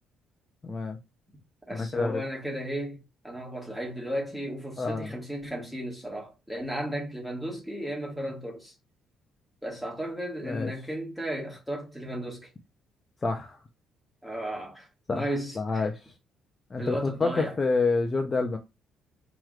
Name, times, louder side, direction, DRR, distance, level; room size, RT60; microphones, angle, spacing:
voice 1, 0.6-1.0 1.7-2.2 4.8-5.1 10.5-10.7 13.2-13.6 15.1-15.3 15.6-16.1 16.7-18.6, left 3 dB, 25° left, 0.5 m, -28 dB
voice 2, 1.7-8.7 9.6-12.5 14.2-15.8 16.8-17.5, right 1 dB, ahead, 1.5 m, -35 dB
4.6 x 3.0 x 2.4 m
cardioid pair, 135°, 0 cm